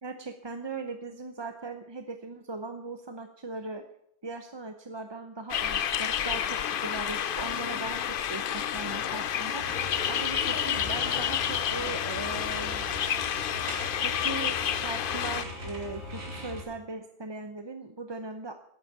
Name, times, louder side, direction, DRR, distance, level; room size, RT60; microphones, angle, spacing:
voice 1, 0.0-3.8 4.2-12.9 14.0-18.5, right 3 dB, 30° right, 7 dB, 0.7 m, -39 dB
sound 1, 5.5-15.4, left 9 dB, 60° left, 0.8 m, -30 dB
sound 2, 9.6-16.6, equal, 80° right, 3.1 m, -40 dB
11.5 x 9.0 x 7.3 m, 0.76 s
omnidirectional pair, 1.1 m